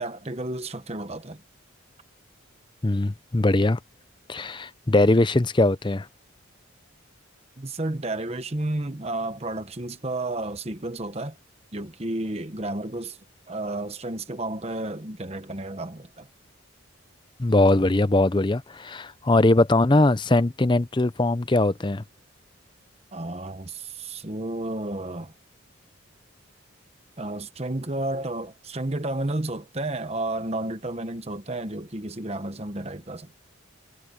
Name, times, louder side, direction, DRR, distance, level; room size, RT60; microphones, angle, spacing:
voice 1, 0.0-1.4 7.6-11.4 11.7-13.2 13.5-16.3 23.1-25.3 27.2-33.4, right 2 dB, 30° right, 1.1 m, -32 dB
voice 2, 2.8-3.8 4.3-6.1 17.4-22.0, left 2 dB, 20° left, 0.6 m, -21 dB
head